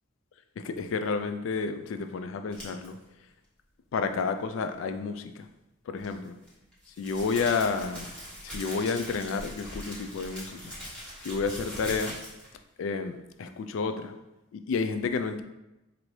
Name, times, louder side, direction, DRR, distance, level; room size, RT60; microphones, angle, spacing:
voice 1, 0.6-3.0 3.9-5.5 5.9-6.4 7.0-8.1 8.4-10.7 11.2-12.1 12.8-14.1 14.5-15.4, left 4 dB, 65° left, 9 dB, 0.3 m, -30 dB
sound 1, 2.5-2.9 6.0-12.5, equal, 5° left, 1.1 m, -41 dB
4.4 x 2.6 x 3.1 m, 0.95 s
head